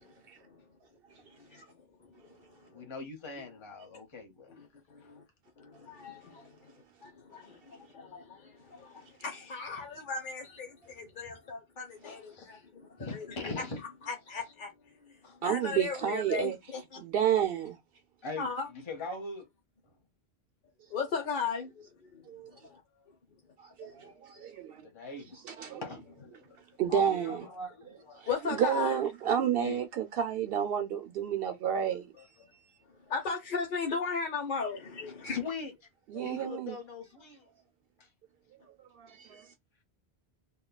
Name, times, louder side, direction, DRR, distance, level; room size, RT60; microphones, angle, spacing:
voice 1, 2.7-4.5 9.8-9.9 12.0-12.6 13.0-13.8 15.2-15.3 18.2-19.5 24.9-25.4 25.8-26.6 26.9-28.2 29.6-29.8 32.2-32.5 35.2-35.7 36.2-37.4, left 3 dB, 30° left, 1.0 m, -41 dB
voice 2, 4.5-5.2 5.6-6.5 7.0-13.2 14.0-14.7 15.4-17.0 18.4-18.7 20.9-21.7 22.1-22.2 22.7-22.8 23.8-23.9 28.3-29.0 31.4-31.5 33.1-35.4 36.1-36.3, left 5 dB, 55° left, 0.8 m, -36 dB
voice 3, 15.4-16.6 17.0-17.8 22.3-22.5 23.6-24.8 25.4-25.8 26.8-27.5 28.2-32.1 36.1-36.8 39.0-39.5, right 9 dB, 70° right, 0.7 m, -30 dB
5.3 x 2.2 x 2.2 m
omnidirectional pair, 1.1 m